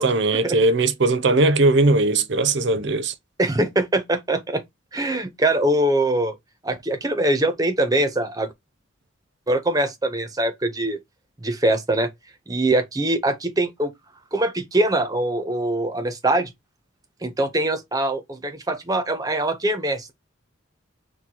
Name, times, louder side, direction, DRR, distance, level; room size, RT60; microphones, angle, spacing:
voice 1, 0.0-3.1, right 2 dB, 60° right, 0.7 m, -19 dB
voice 2, 3.4-4.6 4.9-6.3 6.6-8.5 9.5-11.0 11.4-12.1 12.5-13.9 14.3-16.5 17.2-20.1, right 1 dB, 15° right, 0.6 m, -23 dB
4.5 x 2.3 x 3.7 m
head